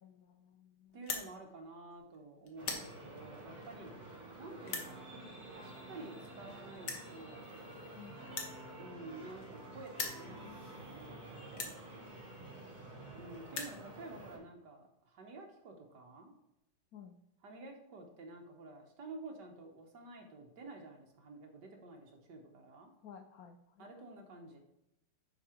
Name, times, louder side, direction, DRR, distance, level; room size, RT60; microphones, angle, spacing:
voice 1, 0.0-1.4 7.9-8.2 12.4-12.6 16.9-17.2 23.0-23.9, left 8 dB, 80° left, 5 dB, 0.8 m, -55 dB
sound 1, 0.9-1.3 1.9-2.2 2.5-2.9 3.6-3.7 4.6-4.9 6.0-6.1 6.2-6.3 6.8-7.1 8.3-9.6 9.9-10.2 10.9-11.0 11.5-11.8 12.7-12.8 13.0-13.1 13.3-13.8, left 4 dB, 55° left, 1.7 m, -40 dB
voice 2, 0.9-3.9 4.4-7.5 8.8-11.7 13.1-16.3 17.4-22.9 23.8-24.6, right 2 dB, 55° right, 2 dB, 1.7 m, -51 dB
sound 2, 2.6-14.4, right 1 dB, 40° right, 3.3 m, -50 dB
10.0 x 4.6 x 4.5 m, 0.86 s
omnidirectional pair, 2.4 m